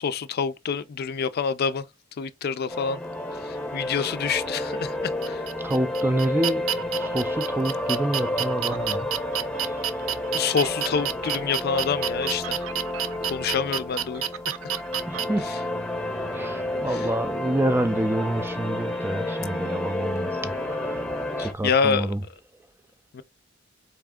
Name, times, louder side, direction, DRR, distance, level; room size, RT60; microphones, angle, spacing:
voice 1, 0.0-1.8 2.2-3.0 3.4-5.5 10.3-12.6 13.2-14.5 15.5-15.6 16.9-17.0 21.4-22.1 23.1-23.2, left 6 dB, 50° left, 0.4 m, -27 dB
sound 1, 2.7-21.5, left 1 dB, 5° left, 0.8 m, -30 dB
sound 2, 5.2-15.2, right 9 dB, 85° right, 0.5 m, -30 dB
voice 2, 5.6-6.7 7.0-9.1 9.5-9.9 15.1-15.5 16.3-21.0 21.4-22.2, right 1 dB, 10° right, 0.3 m, -28 dB
Brass instrument, 15.1-21.5, right 3 dB, 45° right, 0.7 m, -49 dB
4.1 x 3.4 x 3.6 m
head